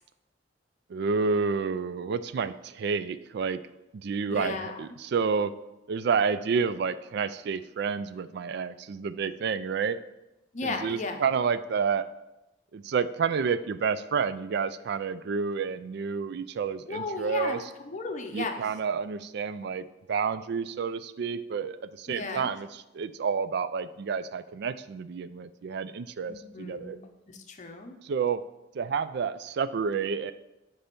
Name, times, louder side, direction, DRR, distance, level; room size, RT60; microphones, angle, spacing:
voice 1, 0.9-3.6 3.9-5.5 5.9-10.0 10.6-12.1 12.7-17.6 18.3-27.0 28.0-28.4 28.7-30.3, right 5 dB, 60° right, 14 dB, 0.3 m, -29 dB
voice 2, 4.3-4.8 10.5-11.3 16.9-17.6 17.8-18.5 22.1-22.5 26.3-27.0 27.3-27.9, left 3 dB, 40° left, 4 dB, 0.7 m, -35 dB
8.5 x 3.4 x 5.3 m, 0.96 s
head